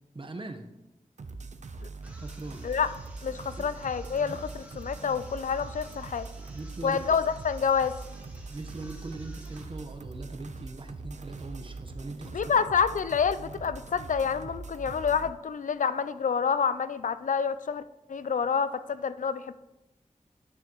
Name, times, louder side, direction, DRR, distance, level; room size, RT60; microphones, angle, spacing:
voice 1, 0.1-0.7 2.2-2.6 3.6-3.7 4.3-4.4 6.5-7.2 8.3-12.4, right 2 dB, 40° right, 5 dB, 1.1 m, -41 dB
sound 1, 1.2-15.3, right 3 dB, 65° right, 0.7 m, -42 dB
sound 2, 2.0-9.8, right 1 dB, 10° right, 1.6 m, -54 dB
voice 2, 3.2-6.3 6.8-7.9 12.3-17.8 18.1-19.5, left 6 dB, 75° left, 14 dB, 0.4 m, -28 dB
9.6 x 9.4 x 3.1 m, 0.96 s
wide cardioid pair, 80°, 13 cm